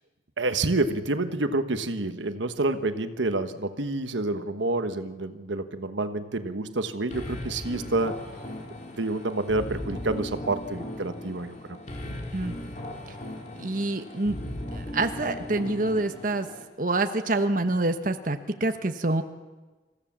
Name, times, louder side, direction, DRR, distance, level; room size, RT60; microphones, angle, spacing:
voice 1, 0.4-8.2 9.0-11.8, right 2 dB, 90° right, 9 dB, 1.2 m, -28 dB
sound 1, 7.1-16.6, left 1 dB, 40° left, 3.3 m, -37 dB
voice 2, 13.6-14.3 14.7-16.5 16.8-19.2, right 2 dB, 45° right, 8 dB, 1.2 m, -26 dB
27.0 x 15.5 x 7.4 m, 1.3 s
head